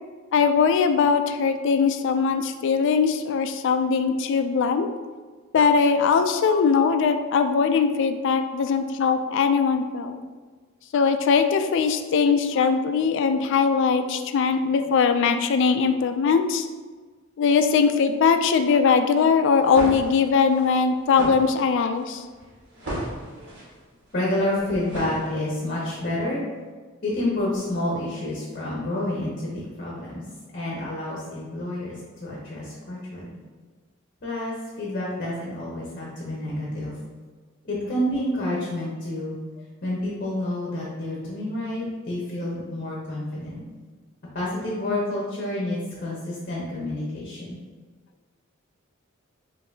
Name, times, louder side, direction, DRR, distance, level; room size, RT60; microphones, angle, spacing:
voice 1, 0.3-4.9 5.5-10.2 10.9-16.7 17.4-22.2, left 5 dB, 65° left, 8 dB, 0.3 m, -21 dB
sound 1, 19.4-25.7, right 1 dB, 60° right, 1.5 m, -36 dB
voice 2, 24.1-26.4 27.0-30.2 30.5-33.4 34.2-37.0 37.6-39.4 39.8-43.6 44.3-47.6, left 1 dB, 45° left, -4 dB, 0.8 m, -29 dB
5.3 x 2.6 x 2.7 m, 1.4 s
head